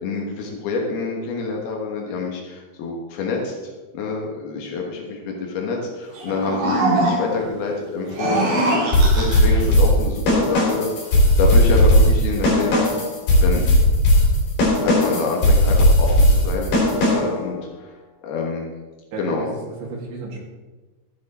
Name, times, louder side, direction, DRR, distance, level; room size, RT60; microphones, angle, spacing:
voice 1, 0.0-10.9 11.4-12.8 13.4-13.6 14.8-16.7 17.1-17.9 18.2-18.7 19.2-19.5, left 4 dB, 80° left, 0 dB, 3.4 m, -27 dB
sound 1, 6.2-7.5 8.0-9.7, right 2 dB, 55° right, 3.3 m, -22 dB
sound 2, 8.9-17.4, left 1 dB, 60° left, 4.7 m, -16 dB
voice 2, 19.1-20.4, right 3 dB, 75° right, -2 dB, 4.1 m, -33 dB
13.0 x 9.4 x 4.3 m, 1.3 s
omnidirectional pair, 4.5 m